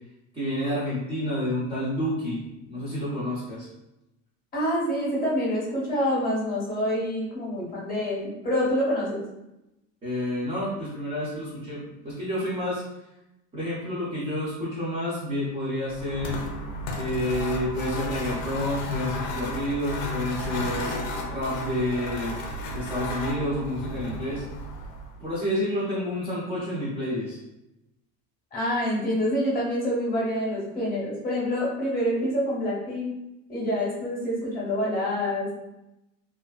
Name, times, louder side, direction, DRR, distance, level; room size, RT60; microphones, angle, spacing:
voice 1, 0.3-3.7 10.0-12.8 13.5-16.4 16.9-22.4 22.7-24.4 25.1-27.4, left 1 dB, 15° right, -9 dB, 0.4 m, -29 dB
voice 2, 4.5-9.2 28.5-33.2 33.5-35.5, equal, 25° left, -6 dB, 0.8 m, -27 dB
sound 1, 15.9-25.3, left 1 dB, 80° left, 0.6 m, -33 dB
2.5 x 2.4 x 2.3 m, 0.90 s
cardioid pair, 155°, 38 cm